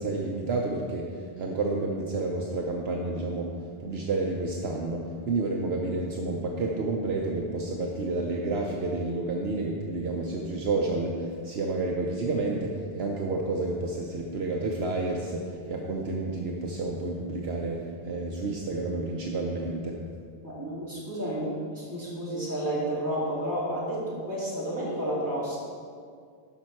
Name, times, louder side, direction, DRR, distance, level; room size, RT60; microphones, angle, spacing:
voice 1, 0.0-3.5 3.8-20.0, right 2 dB, 65° right, -1 dB, 1.0 m, -30 dB
voice 2, 20.4-25.6, right 1 dB, 15° right, -8 dB, 2.8 m, -31 dB
12.5 x 5.4 x 4.4 m, 2.2 s
omnidirectional pair, 1.2 m